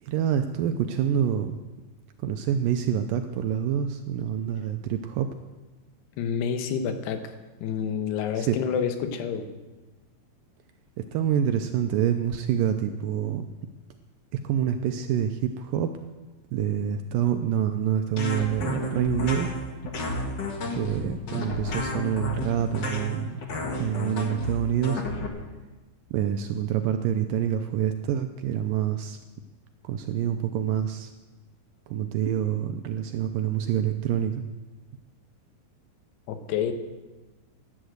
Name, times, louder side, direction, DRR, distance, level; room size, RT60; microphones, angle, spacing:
voice 1, 0.0-1.6 2.2-5.3 8.4-8.6 11.0-13.5 14.4-15.9 16.5-19.5 20.7-23.4 23.8-25.1 26.1-29.2 29.8-31.1 31.9-34.4, right 9 dB, 85° right, 8 dB, 2.0 m, -27 dB
voice 2, 6.2-7.3 7.6-9.5 36.3-36.7, left 7 dB, 90° left, 8 dB, 3.2 m, -28 dB
sound 1, 18.2-25.3, left 2 dB, 55° left, 1.2 m, -32 dB
11.5 x 11.0 x 7.9 m, 1.2 s
omnidirectional pair, 4.6 m